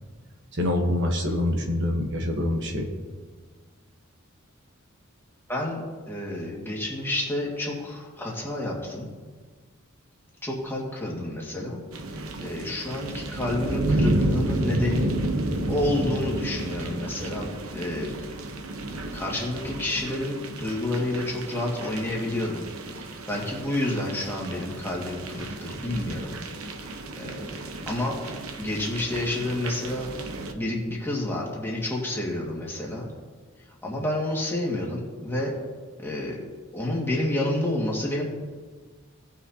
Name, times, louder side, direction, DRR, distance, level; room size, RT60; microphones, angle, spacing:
voice 1, 0.5-2.9, left 1 dB, 60° right, 2 dB, 1.2 m, -25 dB
voice 2, 5.5-9.1 10.4-11.8 12.4-15.2 15.7-17.5 17.7-18.3 19.1-22.7 23.0-26.4 27.2-27.5 27.9-28.2 28.6-30.1 30.5-33.1 33.8-35.5 36.0-36.4 36.7-38.2, left 1 dB, 10° left, -3 dB, 1.8 m, -29 dB
sound 1, 11.9-30.5, right 1 dB, 85° right, 0.8 m, -31 dB
17.5 x 6.0 x 2.8 m, 1.4 s
head